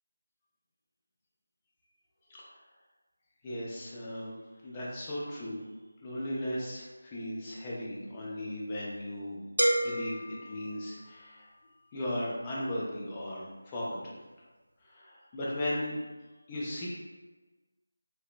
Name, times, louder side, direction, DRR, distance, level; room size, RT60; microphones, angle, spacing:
voice 1, 3.4-4.3 4.6-5.6 6.0-9.4 9.8-11.5 11.9-14.2 14.8-16.0 16.5-16.9, left 1 dB, 20° left, -6 dB, 0.5 m, -36 dB
sound 1, 9.6-11.5, right 1 dB, 85° right, 0.3 m, -31 dB
2.8 x 2.0 x 2.4 m, 1.2 s
figure-of-eight pair, 165°, 0 cm